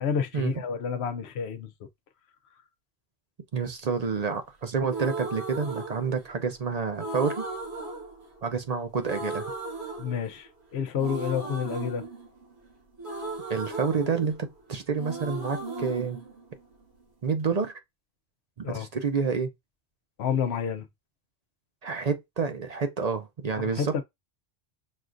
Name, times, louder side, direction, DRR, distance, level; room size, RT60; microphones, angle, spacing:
voice 1, 0.0-1.7 10.0-12.0 18.6-18.9 20.2-20.9 23.6-24.0, left 7 dB, 75° left, 0.9 m, -29 dB
voice 2, 3.5-7.5 8.4-9.5 13.5-16.2 17.2-17.7 18.6-19.5 21.8-24.0, right 5 dB, 45° right, 0.6 m, -29 dB
sound 1, 4.9-6.5 7.0-8.7 9.0-10.6 11.0-14.7 15.0-17.0, right 2 dB, 75° right, 2.0 m, -36 dB
6.2 x 2.4 x 2.5 m
omnidirectional pair, 1.1 m